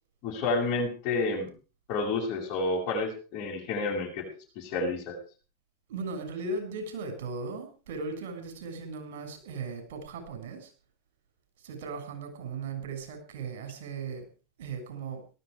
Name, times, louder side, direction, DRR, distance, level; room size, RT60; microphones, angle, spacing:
voice 1, 0.2-1.5 1.9-4.3 4.6-5.2, left 3 dB, 55° left, -4 dB, 7.4 m, -30 dB
voice 2, 5.9-10.7 11.6-14.3 14.6-15.2, right 4 dB, 70° right, 6 dB, 6.9 m, -37 dB
18.5 x 13.5 x 5.1 m, 0.38 s
hypercardioid pair, 95°, 0 cm